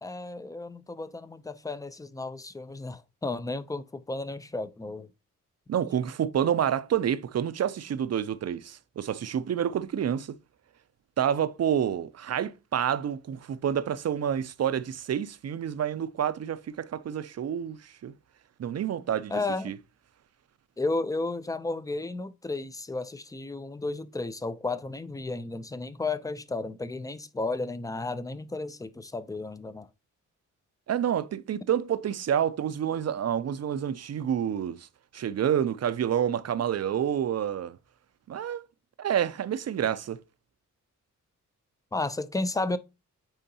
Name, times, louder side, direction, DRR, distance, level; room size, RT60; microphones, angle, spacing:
voice 1, 0.0-5.1 19.3-19.7 20.8-29.9 41.9-42.8, left 2 dB, 10° left, 0.5 m, -33 dB
voice 2, 5.7-10.4 11.2-18.1 18.6-19.8 30.9-34.9 35.1-37.8 38.3-38.6 39.0-40.2, right 9 dB, 55° right, 0.6 m, -28 dB
9.0 x 3.7 x 2.8 m
cardioid pair, 70°, 31 cm